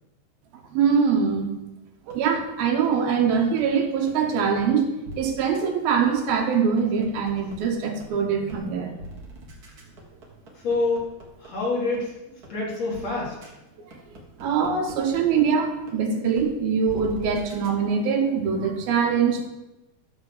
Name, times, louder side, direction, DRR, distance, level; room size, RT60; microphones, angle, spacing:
voice 1, 0.7-1.5 2.1-4.9 5.2-9.0 14.4-19.5, right 6 dB, 75° right, 3 dB, 3.0 m, -23 dB
sound 1, 2.1-3.6 4.1-4.2 4.6-4.7 5.0-5.2 5.5-5.6 6.0-7.6 8.0-8.1 8.5-8.6 9.0-11.5 11.9-12.0 12.4-12.5 12.9-13.0 13.4-13.5 13.9-15.4 15.9-16.0 16.4-16.5 16.8-17.7, right 1 dB, 45° right, 1.2 m, -41 dB
voice 2, 10.6-11.0 11.4-13.4, left 3 dB, 45° left, -6 dB, 4.0 m, -27 dB
12.5 x 4.6 x 7.4 m, 0.99 s
omnidirectional pair, 4.3 m